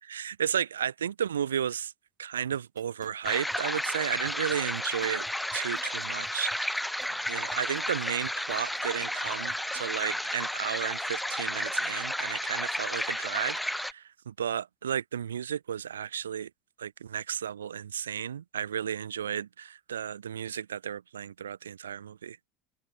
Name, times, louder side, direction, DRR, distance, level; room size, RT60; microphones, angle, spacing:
voice 1, 0.1-1.9 2.2-6.8 7.1-16.5 16.8-22.4, right 8 dB, 80° right, 0.5 m, -33 dB
sound 1, 2.5-10.0 10.5-10.6, right 8 dB, 35° right, 4.1 m, -56 dB
sound 2, 3.2-13.9, left 1 dB, 5° left, 1.9 m, -32 dB
figure-of-eight pair, 75°, 0 cm